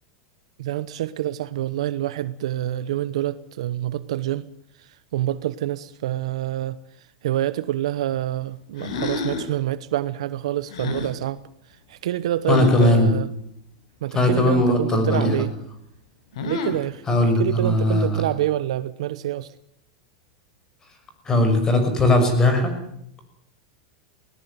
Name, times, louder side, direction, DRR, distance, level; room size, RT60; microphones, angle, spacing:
voice 1, 0.6-4.4 5.1-6.8 7.2-11.4 11.9-13.3 14.0-15.5 16.5-17.0 17.4-19.5, right 13 dB, 80° right, 1.0 m, -26 dB
sound 1, 8.8-9.5 10.7-11.1 12.5-12.9 15.1-15.5 16.3-16.9, left 4 dB, 80° left, 5.8 m, -29 dB
voice 2, 12.5-13.1 14.1-15.5 17.1-18.2 21.2-22.8, left 1 dB, 20° left, 6.2 m, -19 dB
20.5 x 18.5 x 9.5 m
supercardioid pair, 140°, 3 cm